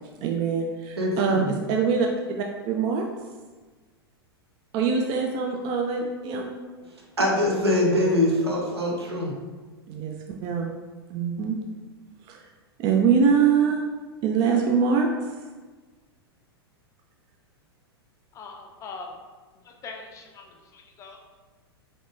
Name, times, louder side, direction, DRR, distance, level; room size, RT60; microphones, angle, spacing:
voice 1, 0.2-2.1 2.4-3.1 4.7-6.5 9.9-10.1 10.4-10.7 11.1-11.6 12.3-12.4 12.8-13.8 14.2-15.4, right 6 dB, 30° right, 1 dB, 0.4 m, -23 dB
voice 2, 1.0-1.5 7.2-9.3, left 1 dB, 80° right, -1 dB, 1.0 m, -23 dB
voice 3, 18.3-19.2 19.6-21.2, left 4 dB, 25° left, 2 dB, 0.5 m, -42 dB
4.1 x 3.4 x 2.5 m, 1.3 s
figure-of-eight pair, 95°, 13 cm